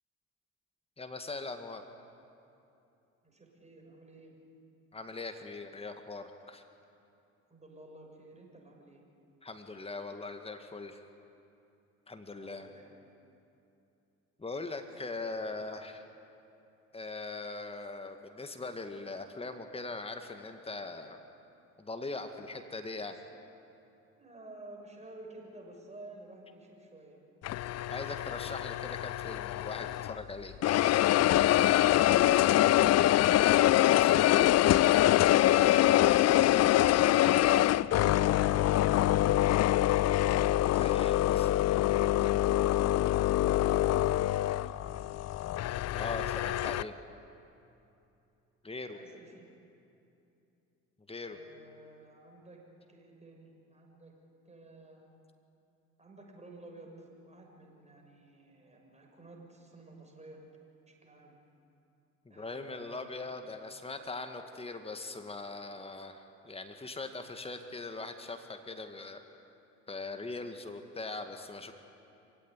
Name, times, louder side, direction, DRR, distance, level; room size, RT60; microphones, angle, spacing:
voice 1, 1.0-1.8 4.9-6.6 9.4-11.0 12.1-12.7 14.4-16.0 16.9-21.2 21.8-23.2 27.9-30.6 33.9-34.2 40.7-41.5 45.9-46.9 48.6-49.0 51.1-51.4 62.3-69.2 69.9-71.7, left 3 dB, 15° left, 7 dB, 2.0 m, -41 dB
voice 2, 3.2-4.3 7.5-9.0 12.4-12.9 24.2-27.2 32.2-33.0 36.3-39.3 41.2-43.4 48.9-49.5 51.3-52.6 52.9-54.1 54.4-55.0 56.0-60.4 60.9-61.4 62.3-63.2, right 2 dB, 15° right, 0 dB, 6.7 m, -52 dB
sound 1, 27.4-30.2 30.6-46.8, left 14 dB, 40° left, 0.6 m, -25 dB
26.5 x 16.5 x 9.7 m, 2.7 s
figure-of-eight pair, 55°, 41 cm